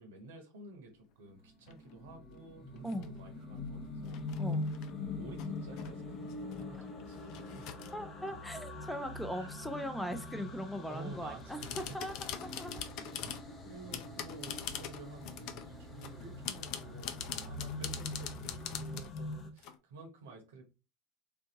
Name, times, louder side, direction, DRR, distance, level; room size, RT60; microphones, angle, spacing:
voice 1, 0.0-4.2 5.2-8.4 9.3-9.5 10.9-12.0 12.9-20.6, right 3 dB, 75° right, 4 dB, 0.8 m, -52 dB
sound 1, 1.5-19.5, left 2 dB, 35° left, 0.9 m, -43 dB
sound 2, 1.7-1.9 2.8-3.1 4.0-4.9 5.4-5.9 6.3-8.0 11.4-13.5 13.9-15.7 16.0-19.8, left 9 dB, 60° left, 0.5 m, -43 dB
voice 2, 7.9-12.8, equal, ahead, 9 dB, 0.6 m, -40 dB
sound 3, 11.1-19.1, left 1 dB, 20° right, 1.4 m, -55 dB
3.5 x 2.6 x 2.8 m, 0.30 s
hypercardioid pair, 80°, 0 cm